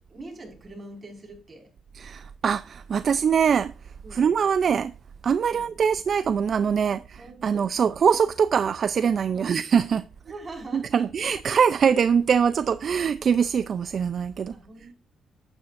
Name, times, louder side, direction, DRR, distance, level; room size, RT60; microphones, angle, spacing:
voice 1, 0.1-1.7 4.0-4.4 5.5-5.7 6.8-8.0 9.3-9.6 10.3-11.1 14.5-14.9, right 2 dB, 30° right, 5.1 m, -43 dB
voice 2, 1.9-4.9 5.2-10.0 10.7-14.5, right 7 dB, 50° right, 0.5 m, -23 dB
11.0 x 9.7 x 2.6 m
cardioid pair, 90°, 0 cm